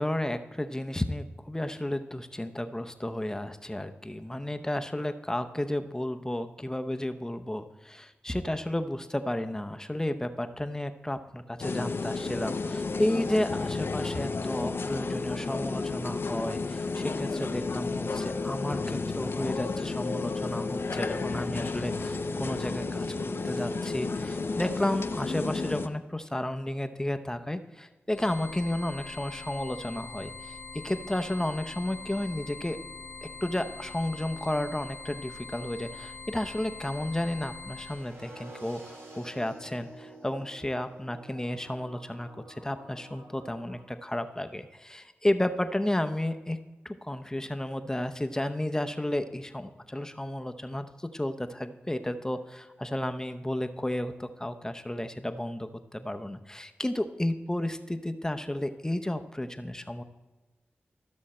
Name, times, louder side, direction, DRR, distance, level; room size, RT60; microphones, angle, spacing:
voice 1, 0.0-23.1 23.4-30.5 30.8-32.8 33.4-46.6 46.8-60.0, left 1 dB, 15° left, 8 dB, 0.7 m, -32 dB
sound 1, 11.6-25.9, left 3 dB, 60° left, 0.6 m, -32 dB
sound 2, 28.1-38.1, left 4 dB, 85° left, 1.0 m, -43 dB
sound 3, 37.8-43.8, right 1 dB, 65° right, 1.8 m, -49 dB
13.5 x 6.3 x 4.3 m, 1.2 s
cardioid pair, 50°, 4 cm